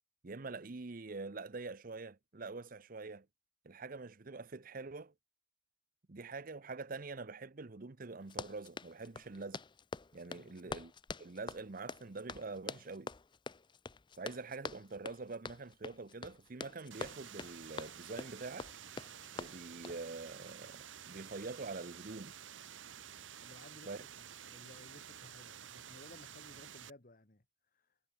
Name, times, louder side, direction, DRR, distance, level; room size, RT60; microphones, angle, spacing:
voice 1, 0.2-3.3 3.6-5.1 6.1-9.6 10.1-10.9 11.2-13.1 14.2-18.7 19.3-22.4 23.9-24.0, right 3 dB, 45° right, 0.8 m, -45 dB
Run, 8.2-20.0, left 4 dB, 25° left, 0.6 m, -46 dB
voice 2, 10.2-10.8 23.4-23.9 24.2-27.4 27.7-27.9, left 2 dB, 45° left, 2.0 m, -58 dB
sound 1, 16.9-26.9, right 9 dB, 90° right, 1.2 m, -51 dB
head